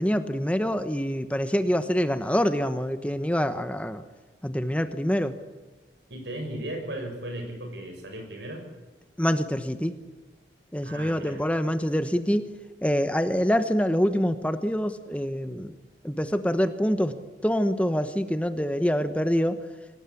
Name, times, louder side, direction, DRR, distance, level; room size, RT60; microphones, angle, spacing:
voice 1, 0.0-4.0 4.4-5.4 9.2-9.9 10.7-12.5 12.8-15.7 16.0-17.2 17.4-19.6, equal, 5° left, 9 dB, 1.0 m, -25 dB
voice 2, 6.1-8.7 10.8-11.4, right 1 dB, 80° right, 5 dB, 6.4 m, -36 dB
26.0 x 18.0 x 8.5 m, 1.2 s
head